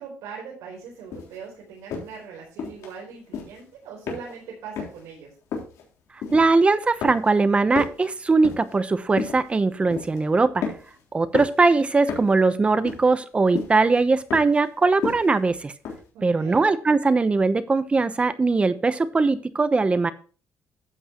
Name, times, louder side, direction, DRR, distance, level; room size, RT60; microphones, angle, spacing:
voice 1, 0.0-5.3 16.1-16.6, right 6 dB, 85° right, -2 dB, 4.3 m, -40 dB
sound 1, 1.1-1.4 1.9-2.2 2.6-2.9 3.3-3.6 4.1-4.5 4.8-5.0 5.5-5.8 6.2-6.7 7.0-7.4 7.7-8.7 9.2-9.5 9.9-10.2 10.6-11.0 11.3-11.6 12.1-12.4 12.8-13.3 13.5-13.8 14.3-14.6 15.0-15.4 15.8-16.0, left 6 dB, 75° left, 3.7 m, -32 dB
voice 2, 6.3-10.6 11.1-15.7 16.2-20.1, right 3 dB, 20° right, 13 dB, 0.9 m, -20 dB
12.0 x 8.1 x 3.0 m, 0.38 s
cardioid pair, 115°, 5 cm